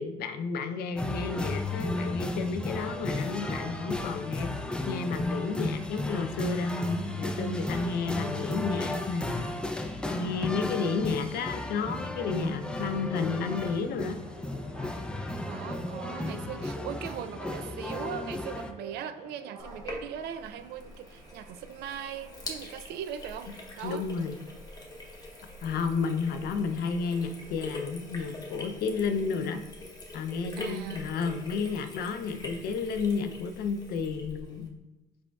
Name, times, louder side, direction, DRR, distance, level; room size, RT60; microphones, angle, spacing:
voice 1, 0.0-4.5 4.9-9.3 10.1-14.2 23.8-24.4 25.6-29.6 30.1-34.7, left 5 dB, 65° left, 8 dB, 0.5 m, -31 dB
sound 1, 1.0-18.7, left 2 dB, 5° left, 0.4 m, -34 dB
sound 2, 11.1-29.2, right 2 dB, 45° right, 1.2 m, -50 dB
voice 2, 15.5-24.0 30.6-31.1, right 9 dB, 75° right, 10 dB, 0.4 m, -40 dB
Sink (filling or washing), 19.6-34.7, left 1 dB, 20° left, 0.9 m, -44 dB
5.1 x 4.3 x 2.3 m, 1.1 s
cardioid pair, 110°, 17 cm